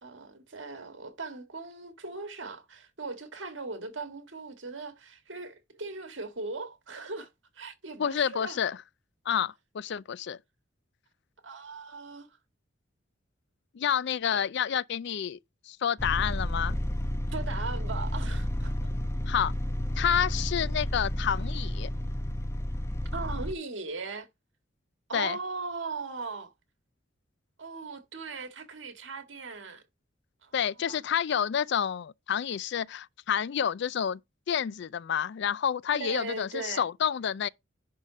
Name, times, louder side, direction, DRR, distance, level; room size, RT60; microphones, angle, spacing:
voice 1, 0.0-7.3 7.5-8.6 11.4-12.3 14.3-14.4 17.3-18.7 21.2-21.3 23.1-24.3 25.1-26.5 27.6-29.8 30.4-30.5 30.9-31.0 35.9-36.9, right 3 dB, 75° right, 1.8 m, -39 dB
voice 2, 8.0-8.8 9.3-10.4 13.7-15.4 15.7-16.8 19.3-19.5 20.0-21.9 25.1-25.4 30.5-34.2 34.5-37.5, left 8 dB, 65° left, 0.4 m, -29 dB
sound 1, 16.0-23.5, left 1 dB, 15° left, 0.6 m, -31 dB
10.5 x 3.8 x 5.0 m
head